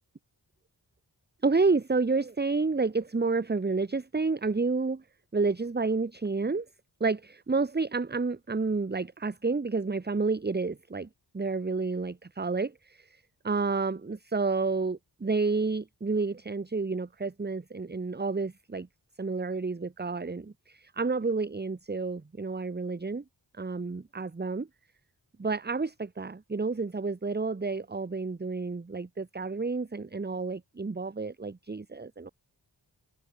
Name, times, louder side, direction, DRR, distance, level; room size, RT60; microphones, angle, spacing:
voice 1, 1.4-5.0 5.3-6.7 7.0-11.1 11.3-18.9 19.2-23.2 23.5-24.7 25.4-32.3, right 4 dB, 25° right, 0.7 m, -30 dB
wide cardioid pair, 40°, 43 cm